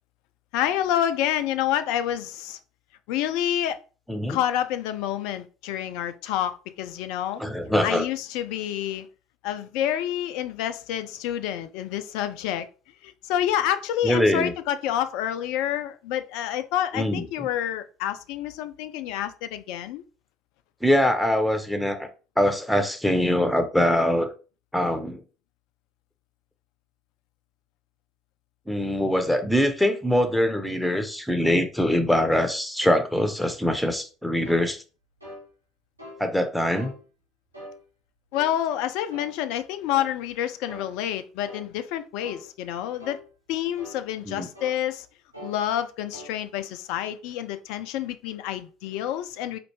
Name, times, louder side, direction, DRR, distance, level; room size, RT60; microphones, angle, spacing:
voice 1, 0.5-2.6 3.1-3.8 4.3-7.4 7.8-9.1 9.4-12.7 13.0-20.0 38.3-43.2 43.5-45.1 45.4-49.6, left 11 dB, 60° left, 0.3 m, -28 dB
voice 2, 7.4-8.0 14.0-14.5 16.9-17.2 20.8-22.1 22.4-24.3 24.7-25.2 28.7-34.8 36.2-36.9 44.3-44.5, left 1 dB, 5° left, 0.7 m, -23 dB
sound 1, 34.4-34.7 35.2-35.4 36.0-36.2 36.7-37.0 37.5-37.8 38.3-38.6 39.1-39.3 39.9-40.1 40.7-40.9 41.4-41.7 42.2-42.4 43.0-43.2 43.8-44.0 44.5-44.8 45.3-45.6 46.1-46.3, left 1 dB, 90° right, 0.9 m, -42 dB
4.2 x 2.5 x 3.1 m
figure-of-eight pair, 60°, 0 cm